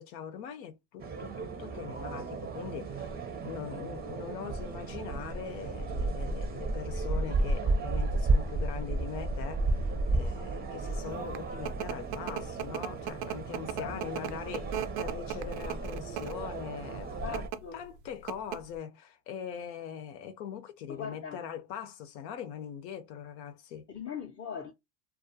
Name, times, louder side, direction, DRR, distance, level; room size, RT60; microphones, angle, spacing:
voice 1, 0.0-3.1 3.4-17.4 17.7-23.9, left 8 dB, 80° left, 0.8 m, -42 dB
sound 1, 1.0-17.5, right 2 dB, 20° right, 0.5 m, -33 dB
sound 2, 11.0-16.5 17.2-17.6 18.0-18.1 18.3-18.8, right 10 dB, 85° right, 0.6 m, -37 dB
voice 2, 13.7-14.3 17.2-17.8 20.9-21.4 23.9-24.7, left 7 dB, 25° left, 0.5 m, -40 dB
2.4 x 2.3 x 2.6 m
supercardioid pair, 95°, 49 cm